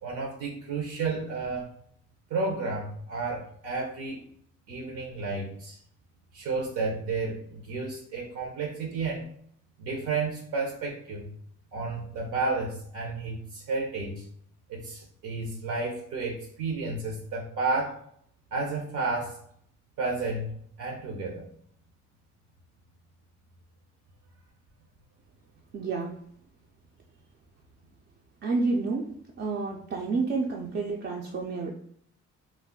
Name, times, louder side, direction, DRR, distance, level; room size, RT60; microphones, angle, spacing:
voice 1, 0.0-1.7 2.3-4.2 4.7-5.8 6.3-9.2 9.8-11.2 11.7-14.3 14.7-18.0 18.5-19.4 20.0-21.5, right 3 dB, 80° right, 0 dB, 0.7 m, -32 dB
voice 2, 25.7-26.2 28.4-29.1 29.4-31.7, right 3 dB, 40° right, 0 dB, 0.4 m, -29 dB
2.3 x 2.1 x 3.6 m, 0.64 s
cardioid pair, 90°, 30 cm